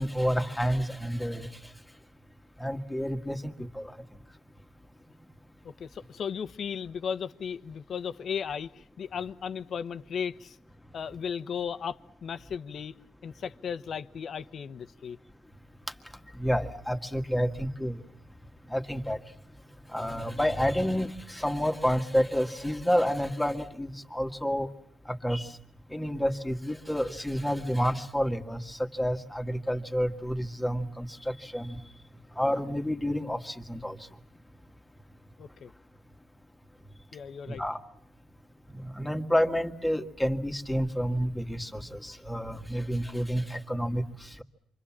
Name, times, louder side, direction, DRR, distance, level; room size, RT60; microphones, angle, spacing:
voice 1, 0.0-1.5 2.6-3.9 16.4-18.0 18.7-19.2 19.9-24.7 25.1-25.5 25.9-31.8 32.4-34.0 37.5-37.8 38.7-44.0, equal, 5° left, 5 dB, 1.9 m, -29 dB
voice 2, 5.6-10.6 10.9-12.9 13.2-15.2 35.4-35.7 37.1-37.6, left 7 dB, 55° left, 11 dB, 1.0 m, -36 dB
28.0 x 24.5 x 7.4 m, 0.74 s
cardioid pair, 90°, 0 cm